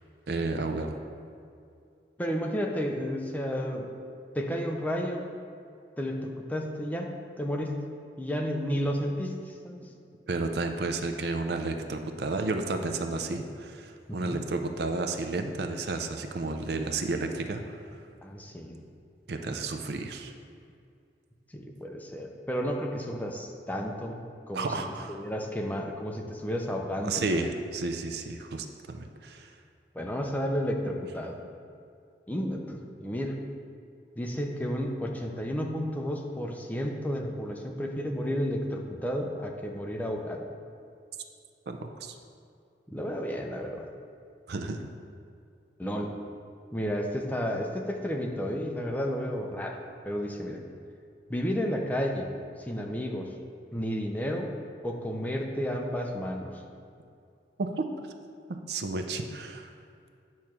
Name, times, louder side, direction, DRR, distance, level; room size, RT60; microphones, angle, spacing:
voice 1, 0.3-1.0 10.3-18.0 19.3-20.3 24.5-25.2 27.0-29.5 41.7-42.1 44.5-44.9 57.6-57.9 58.7-59.7, right 3 dB, 65° right, 5 dB, 0.5 m, -32 dB
voice 2, 2.2-4.0 4.3-5.2 6.0-7.8 8.2-9.9 14.1-14.4 18.2-18.8 21.5-24.7 25.1-27.5 29.9-31.4 32.3-33.4 34.2-40.5 42.9-43.9 45.8-46.1 46.7-49.8 50.0-50.6 51.3-52.3 52.6-53.3 53.7-54.5 54.8-56.6, equal, 10° left, 1 dB, 0.5 m, -32 dB
8.7 x 3.1 x 5.8 m, 2.4 s
head